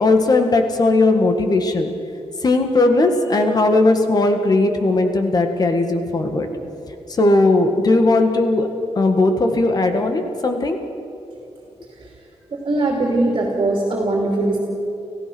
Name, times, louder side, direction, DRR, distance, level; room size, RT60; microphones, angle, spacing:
voice 1, 0.0-1.9 2.4-6.5 7.1-8.7 9.0-10.8, left 2 dB, 35° left, 6 dB, 1.8 m, -17 dB
voice 2, 12.5-14.6, right 2 dB, 45° right, -1 dB, 2.9 m, -20 dB
30.0 x 15.5 x 6.2 m, 2.9 s
wide cardioid pair, 175°, 11 cm